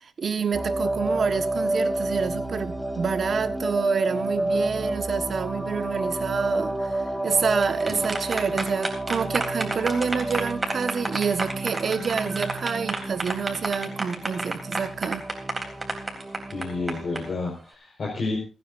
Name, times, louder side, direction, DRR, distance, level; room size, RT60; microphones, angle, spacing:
voice 1, 0.0-7.0 7.2-15.3, right 6 dB, 50° right, 1.4 m, -28 dB
sound 1, 0.5-17.4, right 2 dB, 5° right, 2.9 m, -30 dB
sound 2, 7.4-17.2, right 2 dB, 20° right, 3.6 m, -30 dB
voice 2, 16.5-18.4, left 3 dB, 50° left, 4.8 m, -30 dB
29.0 x 9.7 x 2.7 m
cardioid pair, 110°, 0 cm